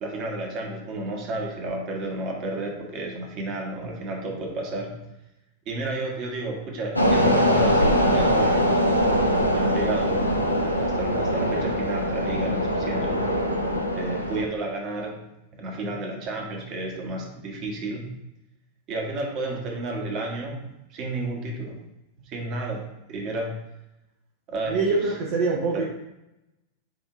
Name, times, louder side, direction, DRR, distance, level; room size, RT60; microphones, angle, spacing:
voice 1, 0.0-5.0 5.7-8.8 9.5-10.4 10.6-13.3 13.9-15.3 15.5-18.2 18.9-21.8 22.2-23.7 24.5-25.2 25.7-25.8, right 2 dB, 40° right, 1 dB, 1.1 m, -32 dB
sound 1, 7.0-14.4, equal, 90° left, 0.6 m, -22 dB
voice 2, 24.7-25.8, right 3 dB, 55° right, -2 dB, 0.6 m, -24 dB
7.7 x 2.6 x 2.5 m, 0.91 s
figure-of-eight pair, 90°, 0 cm